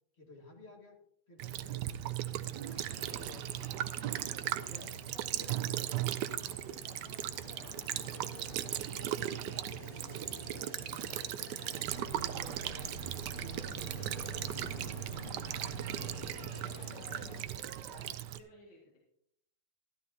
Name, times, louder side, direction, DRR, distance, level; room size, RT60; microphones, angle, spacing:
voice 1, 0.2-1.0 1.3-3.7 4.3-5.9 6.3-7.8 8.9-14.7, left 1 dB, 30° left, 1 dB, 2.0 m, -54 dB
Child speech kid speaking / Bird vocalization bird call bird song / Stream, 1.4-18.4, right 12 dB, 75° right, 1.0 m, -38 dB
sound 1, 2.7-17.4, left 6 dB, 85° left, 2.0 m, -51 dB
voice 2, 4.5-4.9 11.9-12.0 15.6-19.0, left 2 dB, 55° left, -2 dB, 2.7 m, -57 dB
sound 2, 11.9-16.3, right 4 dB, 30° right, 1.3 m, -46 dB
13.0 x 12.5 x 2.8 m, 0.71 s
omnidirectional pair, 2.3 m